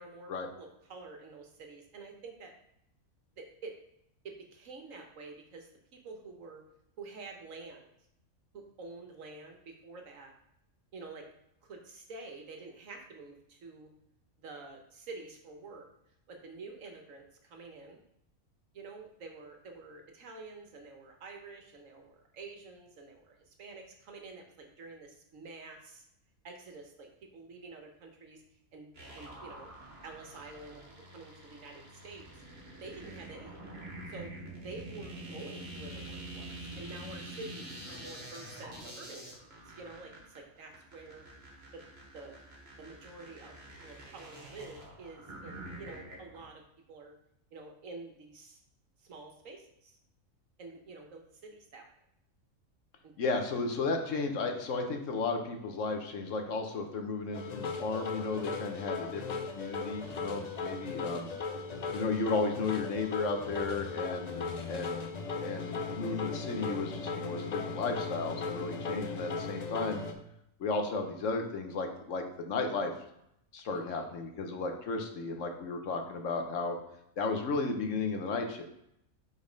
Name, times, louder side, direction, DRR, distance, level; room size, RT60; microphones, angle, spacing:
voice 1, 0.0-0.3 0.6-2.5 3.4-3.8 4.2-6.6 7.0-7.9 8.5-10.3 10.9-11.2 11.6-13.9 14.4-15.9 16.3-18.0 18.7-26.0 26.4-28.4 28.7-28.9 29.1-29.7 30.0-30.8 31.1-32.3 32.8-33.7 34.1-34.3 34.6-41.2 41.7-41.8 42.1-42.4 42.8-43.5 43.8-46.6 46.9-47.1 47.5-48.6 49.0-50.0 50.6-51.8 53.0-53.1 60.3-60.8 73.7-74.1, right 3 dB, 70° right, 3 dB, 1.4 m, -48 dB
sound 1, 28.9-46.4, right 1 dB, 50° right, 1.7 m, -47 dB
voice 2, 53.2-61.3 61.9-65.0 65.4-70.0 70.6-72.9 73.5-76.8 77.2-78.6, left 3 dB, 65° left, 5 dB, 1.2 m, -34 dB
sound 2, 57.3-70.1, left 4 dB, 50° left, 0.5 m, -37 dB
5.2 x 4.1 x 5.1 m, 0.77 s
omnidirectional pair, 1.4 m